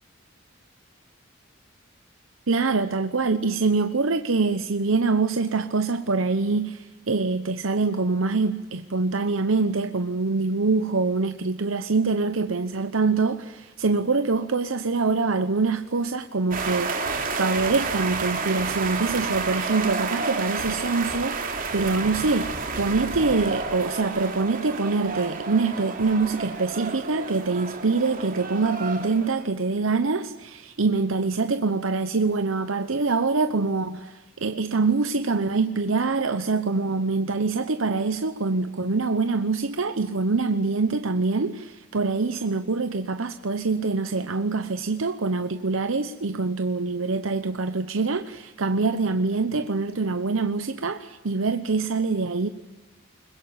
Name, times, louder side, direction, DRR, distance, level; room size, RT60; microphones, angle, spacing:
voice 1, 2.5-17.0 17.3-52.5, right 3 dB, 80° right, 1.0 m, -25 dB
sound 1, 16.5-29.5, right 4 dB, 45° right, 3.0 m, -30 dB
22.5 x 20.5 x 8.9 m
head